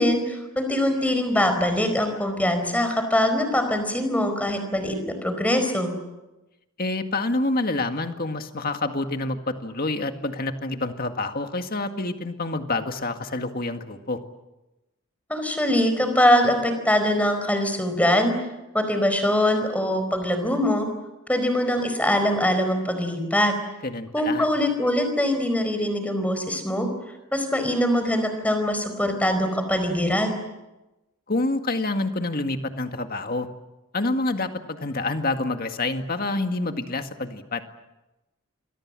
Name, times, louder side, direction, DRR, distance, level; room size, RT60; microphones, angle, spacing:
voice 1, 0.0-5.9 15.3-18.4 18.7-20.9 21.3-23.5 24.1-26.9 27.3-30.4, left 1 dB, 5° left, 7 dB, 4.6 m, -23 dB
voice 2, 6.8-14.2 23.8-24.5 31.3-33.5 33.9-37.6, left 2 dB, 40° left, 6 dB, 2.0 m, -27 dB
28.0 x 23.5 x 7.6 m, 1.0 s
head